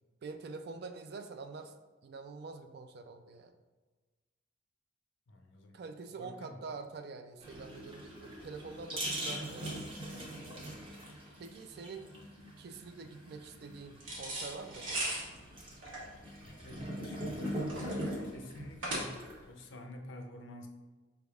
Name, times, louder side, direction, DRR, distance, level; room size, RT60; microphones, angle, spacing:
voice 1, 0.2-1.7 2.0-3.5 5.7-10.7 11.4-12.1 12.6-15.5, right 4 dB, 55° right, 8 dB, 0.3 m, -46 dB
voice 2, 5.3-5.8 6.2-6.6 16.4-17.6 18.2-19.2 19.4-20.7, left 1 dB, 75° left, 4 dB, 0.5 m, -48 dB
sound 1, 7.4-19.6, equal, 25° right, 0.7 m, -42 dB
sound 2, 14.0-19.4, right 1 dB, 85° right, 1.2 m, -39 dB
5.0 x 3.4 x 2.3 m, 1.3 s
head